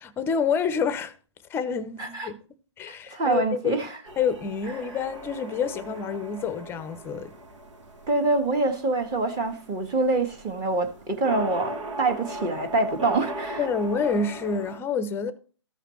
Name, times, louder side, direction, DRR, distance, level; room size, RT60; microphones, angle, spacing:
voice 1, 0.0-1.1 1.5-2.4 2.8-3.9 4.2-7.3 13.6-15.3, left 5 dB, 15° left, 0.7 m, -28 dB
voice 2, 2.9-3.9 8.1-13.7, right 3 dB, 25° right, 1.6 m, -25 dB
sound 1, 4.1-14.8, right 1 dB, 80° right, 1.5 m, -39 dB
14.0 x 5.0 x 3.1 m
hypercardioid pair, 135°, 15 cm